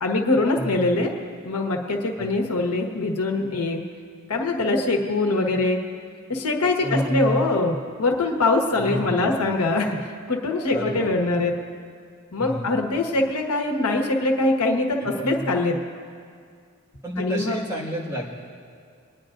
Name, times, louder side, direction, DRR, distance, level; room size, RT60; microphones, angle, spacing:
voice 1, 0.0-1.1 1.4-3.8 4.3-5.8 6.3-11.5 12.3-15.8 17.2-17.6, left 2 dB, 90° left, 2 dB, 1.3 m, -23 dB
voice 2, 0.5-1.0 2.2-2.3 6.8-7.4 8.8-9.6 10.7-11.1 12.4-12.8 15.2-15.4 17.0-18.3, equal, 15° right, -6 dB, 1.9 m, -30 dB
29.5 x 10.0 x 2.6 m, 2.2 s
head